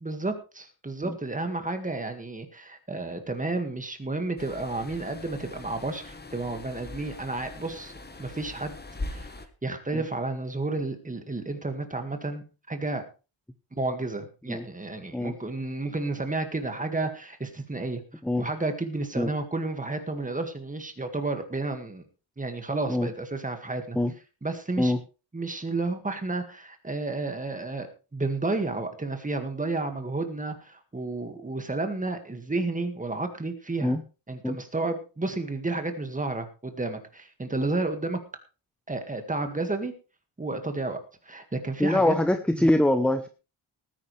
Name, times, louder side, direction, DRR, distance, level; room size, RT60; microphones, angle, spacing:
voice 1, 0.0-7.9 8.2-8.8 9.1-9.3 9.6-13.0 13.7-18.0 18.4-22.0 22.4-24.0 24.4-24.9 25.3-34.0 34.3-38.2 38.9-39.9 40.4-41.0 41.3-42.1 42.5-42.7, right 2 dB, 15° right, 6 dB, 1.9 m, -31 dB
sound 1, 4.4-9.5, left 2 dB, 20° left, 1.2 m, -41 dB
voice 2, 41.8-43.3, left 1 dB, ahead, 8 dB, 0.7 m, -24 dB
19.0 x 10.0 x 3.3 m, 0.31 s
wide cardioid pair, 155°, 50 cm